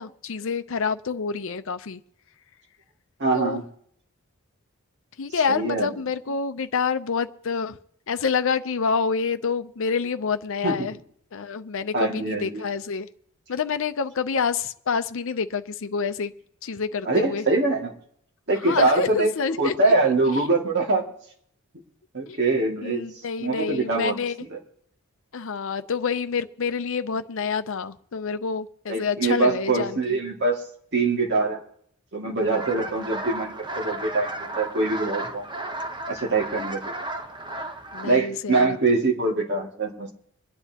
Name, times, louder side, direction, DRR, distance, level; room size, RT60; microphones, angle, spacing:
voice 1, 0.0-2.0 3.3-3.6 5.2-7.8 8.1-11.0 11.3-13.1 13.5-16.3 16.6-17.4 18.5-19.9 20.3-20.4 22.3-22.4 22.8-24.3 25.3-30.2 32.7-32.9 37.9-39.0, left 5 dB, 60° left, 10 dB, 0.6 m, -27 dB
voice 2, 3.2-3.6 5.5-5.9 10.6-10.9 11.9-12.6 17.1-17.9 18.5-19.3 19.6-21.0 22.1-23.0 23.4-24.1 24.5-24.6 28.9-30.6 30.9-31.6 32.1-35.5 36.1-36.9 38.0-40.1, right 3 dB, 50° right, -1 dB, 2.2 m, -23 dB
sound 1, 32.4-38.1, right 2 dB, 20° right, 0.8 m, -34 dB
24.5 x 10.0 x 2.9 m, 0.67 s
head